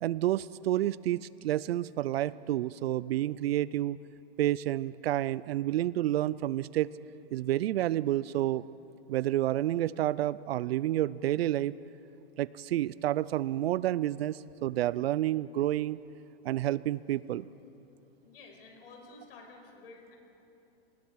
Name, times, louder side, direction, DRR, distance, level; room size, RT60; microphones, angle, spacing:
voice 1, 0.0-4.0 4.4-6.9 7.3-8.6 9.1-11.7 12.4-16.0 16.4-17.5, right 13 dB, 80° right, 19 dB, 0.5 m, -29 dB
voice 2, 18.2-20.2, left 3 dB, 70° left, 1 dB, 5.4 m, -51 dB
29.5 x 20.5 x 4.7 m, 2.8 s
supercardioid pair, 170°, 30 cm